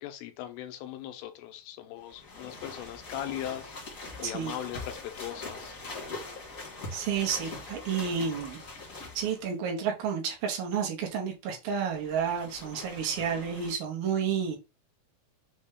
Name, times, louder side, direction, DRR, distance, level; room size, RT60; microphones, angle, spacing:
voice 1, 0.0-3.7 4.2-5.8, left 12 dB, 85° left, 2.6 m, -39 dB
sound 1, 2.0-9.5 11.8-13.7, left 3 dB, 50° left, 0.9 m, -42 dB
voice 2, 6.9-8.6 9.2-14.6, right 7 dB, 75° right, 2.5 m, -31 dB
6.4 x 2.2 x 3.5 m
omnidirectional pair, 4.4 m